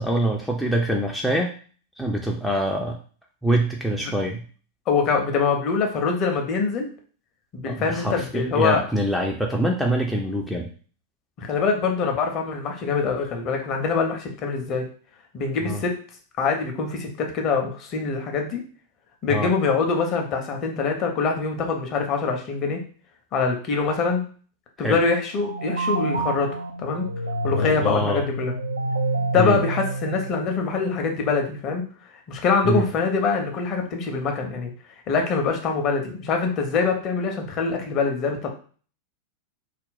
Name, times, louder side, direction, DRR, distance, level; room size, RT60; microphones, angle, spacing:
voice 1, 0.0-1.5 2.0-2.9 3.4-4.4 7.7-10.7 15.6-15.8 19.3-19.5 24.8-25.0 27.5-28.2 29.2-29.6 32.6-32.8, right 1 dB, ahead, -1 dB, 0.4 m, -25 dB
voice 2, 4.9-6.9 7.5-8.8 11.4-14.9 15.3-16.0 16.4-18.6 19.2-22.8 23.3-24.3 24.8-26.5 26.8-27.1 27.4-28.5 29.3-31.9 32.3-34.7 35.1-38.5, left 4 dB, 35° left, 3 dB, 0.7 m, -24 dB
sound 1, 25.3-30.8, right 1 dB, 75° right, 0.3 m, -28 dB
2.5 x 2.0 x 3.9 m, 0.41 s
figure-of-eight pair, 90°, 0 cm